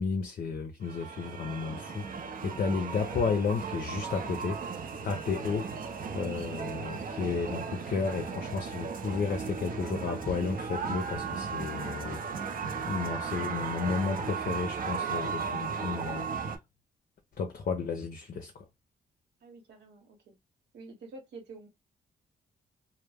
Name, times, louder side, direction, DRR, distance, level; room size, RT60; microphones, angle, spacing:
voice 1, 0.0-2.0 2.4-4.6 5.0-5.7 6.1-12.2 12.9-16.3 17.4-18.6, left 5 dB, 50° left, 0.5 m, -32 dB
sound 1, 0.8-16.6, right 5 dB, 55° right, 0.6 m, -36 dB
voice 2, 19.4-20.4 20.7-21.7, right 3 dB, 80° right, 1.0 m, -49 dB
2.1 x 2.1 x 3.3 m
cardioid pair, 70°, 18 cm